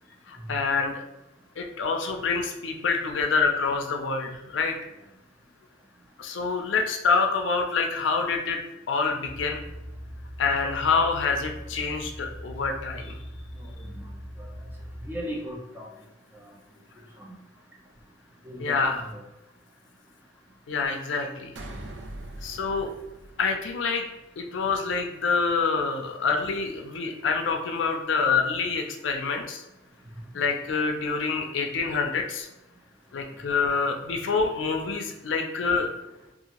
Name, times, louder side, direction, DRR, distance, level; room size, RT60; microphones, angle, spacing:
voice 1, 0.3-1.0 1.6-4.8 6.2-8.6 8.9-9.7 10.4-13.2 18.6-19.0 20.7-21.5 22.4-22.9 23.4-24.1 24.4-29.6 30.3-32.5 33.1-35.9, left 4 dB, 70° left, 4 dB, 0.4 m, -26 dB
sound 1, 9.2-15.2, equal, 45° right, 0.8 m, -41 dB
voice 2, 13.6-14.1 14.4-14.5 15.0-15.9 16.3-16.5 17.2-17.4 18.4-19.2, equal, 10° right, -2 dB, 0.4 m, -37 dB
sound 2, 21.6-24.1, right 1 dB, 70° right, 0.4 m, -42 dB
2.7 x 2.4 x 2.8 m, 0.95 s
head